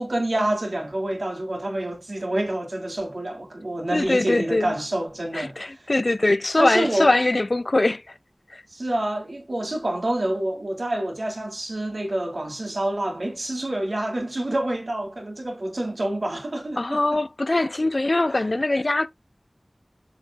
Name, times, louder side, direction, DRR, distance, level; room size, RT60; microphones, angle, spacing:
voice 1, 0.0-5.8 6.6-7.2 8.7-17.2 17.6-17.7 18.3-18.4, right 1 dB, 75° right, 2.2 m, -27 dB
voice 2, 3.9-4.7 5.3-8.0 8.5-8.6 16.8-19.1, left 2 dB, 65° left, 0.6 m, -22 dB
7.3 x 6.3 x 2.3 m
wide cardioid pair, 40°, 0 cm